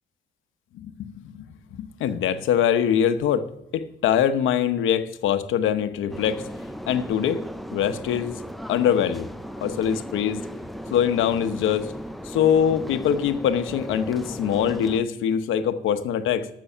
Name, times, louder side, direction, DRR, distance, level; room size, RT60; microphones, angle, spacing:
voice 1, 0.7-1.5 1.8-3.5 3.7-6.4 6.9-7.4 7.7-8.4 8.7-9.3 9.6-10.5 10.9-11.9 12.2-16.5, left 9 dB, 85° left, 10 dB, 0.9 m, -23 dB
sound 1, 6.1-15.0, equal, ahead, 0.5 m, -36 dB
13.5 x 6.2 x 5.5 m, 0.88 s
cardioid pair, 90°, 20 cm